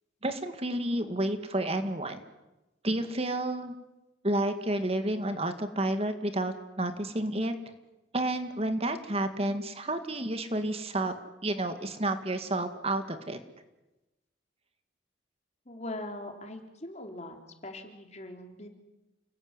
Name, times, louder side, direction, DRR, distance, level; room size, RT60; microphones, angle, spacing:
voice 1, 0.2-2.2 2.8-3.7 4.2-7.6 8.1-11.1 11.4-13.4, right 1 dB, 35° right, 8 dB, 2.1 m, -30 dB
voice 2, 15.7-17.4 17.6-18.7, left 1 dB, 40° left, 4 dB, 3.8 m, -41 dB
29.5 x 20.5 x 9.9 m, 1.0 s
head